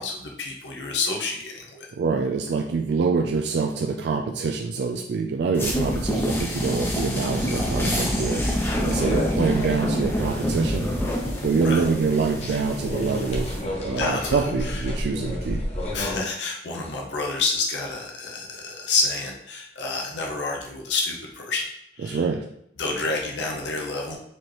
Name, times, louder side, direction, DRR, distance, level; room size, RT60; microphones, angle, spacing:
voice 1, 0.0-1.9 8.9-9.1 11.6-11.8 14.0-15.0 15.9-21.6 21.9-22.2 22.8-24.2, left 3 dB, 90° left, 0 dB, 0.7 m, -29 dB
voice 2, 2.0-10.9 11.2-13.5 13.8-15.6 22.0-22.5, right 4 dB, 70° right, 2 dB, 0.3 m, -25 dB
sound 1, 5.6-13.6, equal, 10° left, 0.5 m, -27 dB
sound 2, 9.0-16.2, left 1 dB, 35° left, 0.8 m, -31 dB
4.3 x 2.9 x 3.2 m, 0.76 s
head